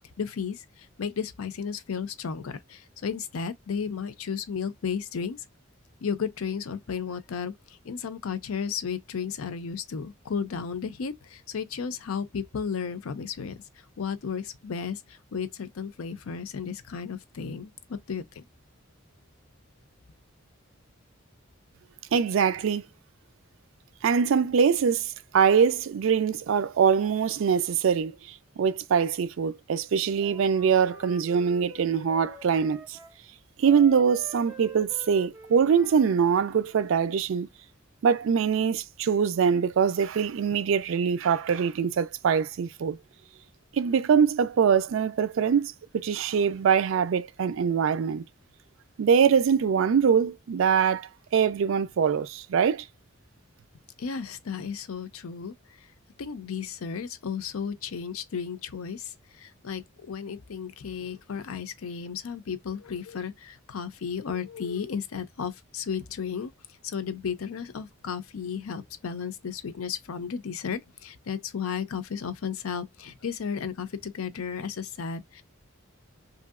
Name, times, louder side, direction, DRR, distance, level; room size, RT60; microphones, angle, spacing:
voice 1, 0.2-5.4 6.0-7.5 7.8-13.5 14.0-18.4 54.0-55.5 56.2-66.5 66.8-75.4, left 6 dB, 80° left, 0.5 m, -34 dB
voice 2, 22.1-22.8 24.0-33.0 33.6-37.5 38.0-43.0 43.7-48.2 49.0-52.9, right 7 dB, 65° right, 0.3 m, -23 dB
Wind instrument woodwind instrument, 30.2-33.2 33.6-37.1, equal, 5° right, 0.6 m, -47 dB
3.0 x 2.7 x 2.3 m
head